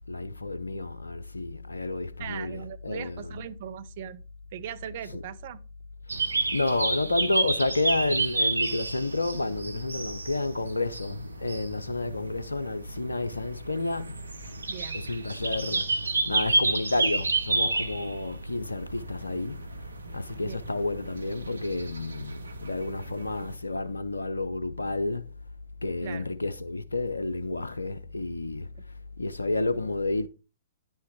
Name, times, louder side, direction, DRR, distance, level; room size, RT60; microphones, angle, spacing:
voice 1, 0.1-3.2 6.5-14.3 14.9-15.9 16.3-19.7 20.1-25.3 25.8-28.7 29.2-30.3, left 2 dB, 90° left, 0.5 m, -30 dB
voice 2, 2.2-4.2 4.5-5.6 14.7-15.0 20.4-20.6 26.0-26.3, right 10 dB, 50° right, 0.7 m, -39 dB
sound 1, 6.1-23.5, right 3 dB, 85° right, 1.1 m, -31 dB
10.5 x 5.7 x 4.4 m
figure-of-eight pair, 115°, 0 cm